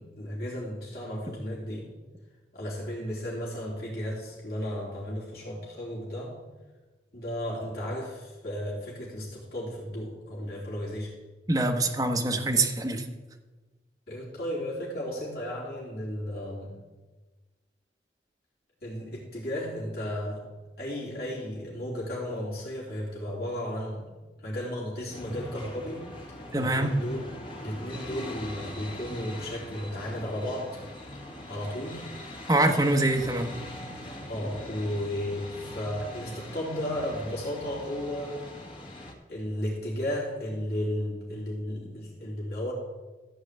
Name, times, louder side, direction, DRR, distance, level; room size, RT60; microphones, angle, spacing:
voice 1, 0.0-1.9 2.5-6.4 7.1-11.1 14.1-16.8 18.8-20.4 20.8-24.1 24.4-27.3 27.6-30.8 31.5-32.1 34.3-38.4 39.3-42.7, equal, 55° left, -5 dB, 3.3 m, -34 dB
voice 2, 11.5-13.1 26.5-27.0 32.5-33.5, right 2 dB, 20° right, 3 dB, 1.1 m, -24 dB
sound 1, 25.1-39.1, left 1 dB, 30° left, 1.5 m, -42 dB
14.0 x 4.8 x 8.1 m, 1.3 s
head